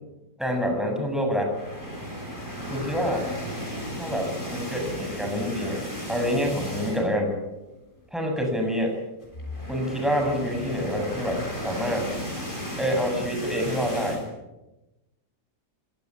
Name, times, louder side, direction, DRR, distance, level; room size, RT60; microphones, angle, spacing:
voice 1, 0.4-1.5 2.7-3.3 4.0-5.8 6.1-7.4 8.1-8.9 9.7-12.1 12.8-14.2, equal, ahead, 2 dB, 7.3 m, -27 dB
sound 1, 1.4-7.3 7.6-7.8 8.1-8.2 9.2-14.3, equal, 30° left, 8.0 m, -35 dB
25.5 x 17.5 x 9.9 m, 1.0 s
omnidirectional pair, 1.8 m